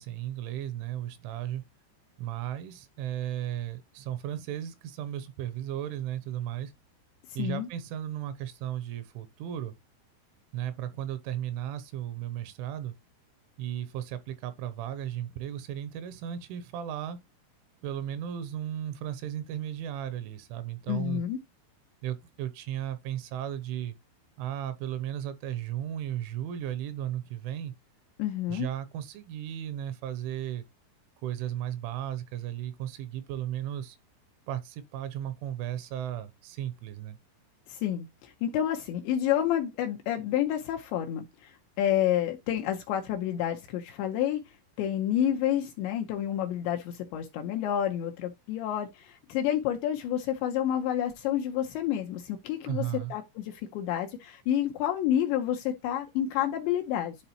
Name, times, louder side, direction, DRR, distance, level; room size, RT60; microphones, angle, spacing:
voice 1, 0.0-1.6 2.2-6.7 7.4-9.7 10.5-12.9 13.6-17.2 17.8-21.2 22.0-24.0 24.4-27.7 28.5-30.6 31.2-34.0 34.5-37.2 52.6-53.1, right 11 dB, 80° right, 3.0 m, -35 dB
voice 2, 20.9-21.4 28.2-28.7 37.7-44.4 44.8-52.8 53.1-57.2, left 11 dB, 80° left, 2.6 m, -29 dB
11.0 x 3.9 x 2.9 m
omnidirectional pair, 5.7 m